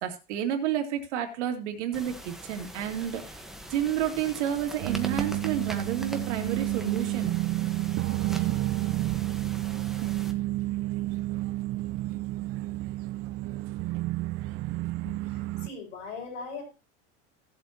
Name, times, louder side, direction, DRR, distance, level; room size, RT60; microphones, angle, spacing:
voice 1, 0.0-3.2 3.7-7.3, right 9 dB, 85° right, 5 dB, 2.5 m, -30 dB
sound 1, 1.9-10.3, right 1 dB, ahead, 1.3 m, -42 dB
sound 2, 4.8-15.7, right 17 dB, 40° right, 0.6 m, -30 dB
voice 2, 15.3-16.6, left 4 dB, 85° left, 0 dB, 6.5 m, -39 dB
17.5 x 7.6 x 3.0 m, 0.30 s
supercardioid pair, 135°, 35 cm